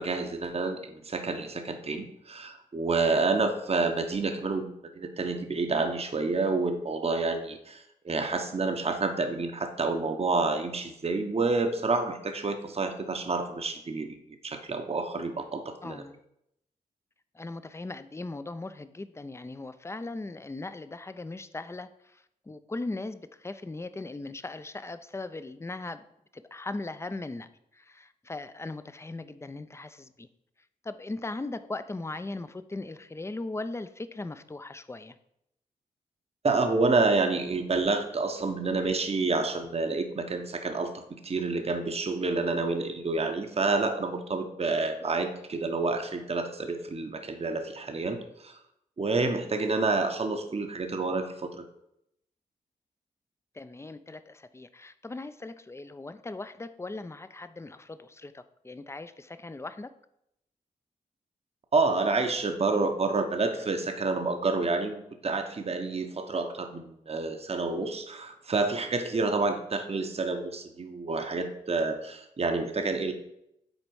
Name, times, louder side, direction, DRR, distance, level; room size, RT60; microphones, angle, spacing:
voice 1, 0.0-14.2 14.4-16.0 36.4-48.6 49.0-51.6 61.7-73.1, right 3 dB, 40° right, 6 dB, 0.9 m, -29 dB
voice 2, 15.8-16.2 17.4-21.9 22.5-26.0 26.5-27.5 27.8-30.3 30.8-35.1 53.6-59.9, left 2 dB, 15° left, 12 dB, 0.5 m, -38 dB
6.4 x 4.0 x 4.7 m, 0.79 s
supercardioid pair, 40°, 17 cm